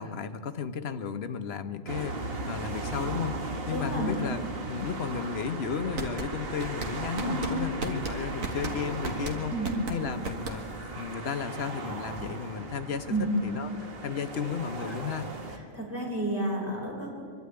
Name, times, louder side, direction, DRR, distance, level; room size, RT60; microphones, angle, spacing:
voice 1, 0.0-4.4 4.7-9.5 9.9-10.6 11.0-15.3, left 7 dB, 55° left, 9 dB, 1.1 m, -34 dB
sound 1, 1.9-15.6, right 3 dB, 45° right, 1.6 m, -37 dB
voice 2, 3.7-4.1 7.2-7.4 9.5-9.7 13.1-13.3 15.7-17.2, right 2 dB, 10° right, -3 dB, 4.1 m, -31 dB
sound 2, 6.0-10.9, right 3 dB, 90° right, 2.0 m, -36 dB
23.5 x 12.0 x 9.5 m, 2.3 s
omnidirectional pair, 1.4 m